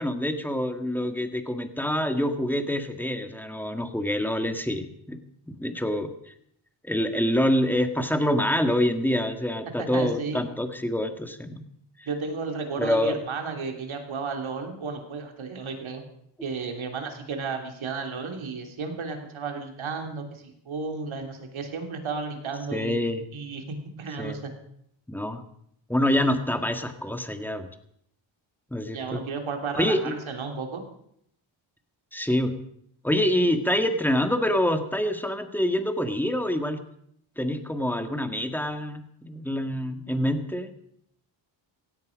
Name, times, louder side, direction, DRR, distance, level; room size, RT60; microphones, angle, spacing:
voice 1, 0.0-5.2 5.5-6.3 6.8-11.6 12.0-12.1 12.8-13.2 22.7-23.3 24.2-24.4 25.1-25.4 25.9-27.7 28.7-29.2 29.8-30.0 32.1-32.5 33.0-36.8 37.4-40.7, left 1 dB, 5° left, 7 dB, 1.8 m, -26 dB
voice 2, 9.8-10.4 12.1-16.0 16.4-23.0 23.3-24.5 28.9-30.8, right 4 dB, 70° right, 5 dB, 3.0 m, -33 dB
16.5 x 16.0 x 5.2 m, 0.71 s
cardioid pair, 95°, 49 cm